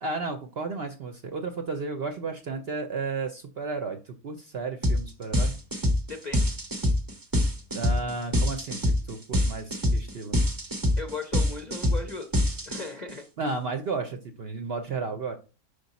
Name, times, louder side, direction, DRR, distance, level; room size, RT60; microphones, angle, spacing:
voice 1, 0.0-5.6 7.7-10.4 13.4-15.4, right 4 dB, 60° right, 6 dB, 0.7 m, -33 dB
sound 1, 4.8-5.0 5.3-13.1, left 1 dB, 30° right, 0.4 m, -24 dB
voice 2, 6.1-6.5 11.0-12.3 12.7-13.2, left 3 dB, 45° left, 4 dB, 0.5 m, -37 dB
5.2 x 5.2 x 4.0 m, 0.33 s
omnidirectional pair, 1.6 m